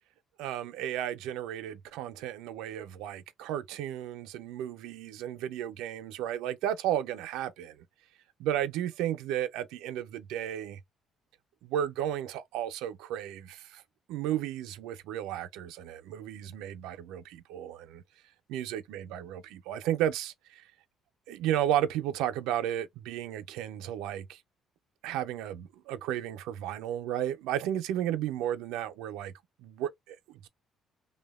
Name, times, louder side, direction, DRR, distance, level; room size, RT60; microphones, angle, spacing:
voice 1, 0.4-7.8 8.4-10.8 11.6-13.8 14.1-18.0 18.5-20.6 21.3-24.4 25.0-29.3 29.6-30.5, right 11 dB, 85° right, 0.4 m, -33 dB
2.7 x 2.1 x 2.2 m
supercardioid pair, 65°, 0 cm